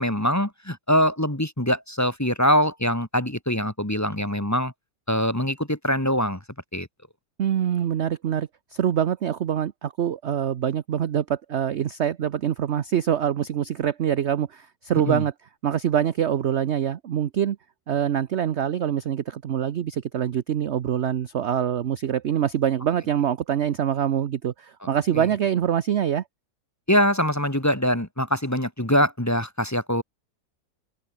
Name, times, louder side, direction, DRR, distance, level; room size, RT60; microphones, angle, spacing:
voice 1, 0.0-4.7 5.1-6.4 6.7-6.9 15.1-15.2 25.1-25.2 26.9-30.0, equal, 10° left, 2.0 m, -23 dB
voice 2, 7.4-15.3 15.6-17.6 17.9-26.2, right 9 dB, 55° right, 0.8 m, -25 dB
open air
omnidirectional pair, 1.9 m